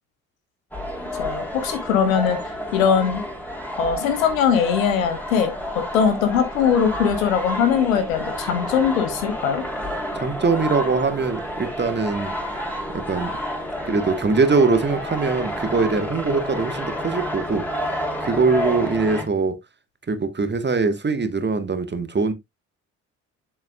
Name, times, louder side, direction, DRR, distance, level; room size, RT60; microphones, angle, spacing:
sound 1, 0.7-19.2, equal, 5° left, 3.0 m, -30 dB
voice 1, 1.2-2.4 2.7-3.2 3.8-5.5 5.9-9.6, left 7 dB, 80° left, 1.3 m, -20 dB
voice 2, 10.1-12.3 12.9-13.3 13.8-17.6 18.2-19.6 20.1-22.3, right 4 dB, 25° right, 1.3 m, -22 dB
8.0 x 7.2 x 2.3 m
figure-of-eight pair, 40°, 40 cm